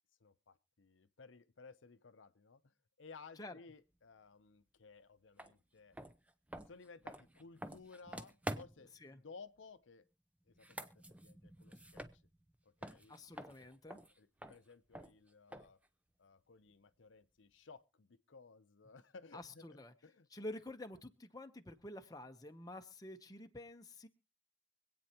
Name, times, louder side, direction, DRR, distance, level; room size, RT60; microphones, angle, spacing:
voice 1, 0.2-6.0 6.7-10.1 10.5-10.9 11.2-12.2 12.6-13.7 14.2-15.8 16.2-20.3, left 4 dB, 75° left, 0.7 m, -58 dB
sound 1, 5.4-5.5 5.9-9.0 10.5-12.5 12.8-15.9, right 1 dB, 5° right, 0.6 m, -48 dB
voice 2, 13.1-14.0 19.3-19.9 20.3-24.1, left 1 dB, 20° left, 0.8 m, -49 dB
25.0 x 8.8 x 2.9 m
head